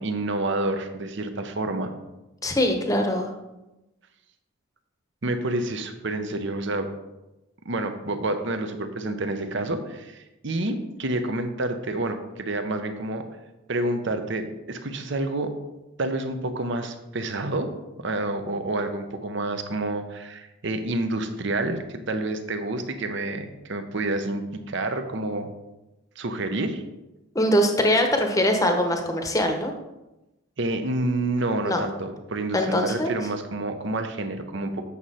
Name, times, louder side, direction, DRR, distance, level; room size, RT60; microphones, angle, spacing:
voice 1, 0.0-1.9 5.2-6.9 7.6-13.3 13.7-15.5 16.0-17.7 18.0-25.5 26.2-26.8 30.6-34.9, right 2 dB, 60° right, 8 dB, 0.8 m, -28 dB
voice 2, 2.4-3.3 27.3-29.7 31.6-31.8 32.5-33.1, left 1 dB, 15° left, 4 dB, 0.9 m, -22 dB
8.4 x 6.2 x 4.2 m, 1.0 s
head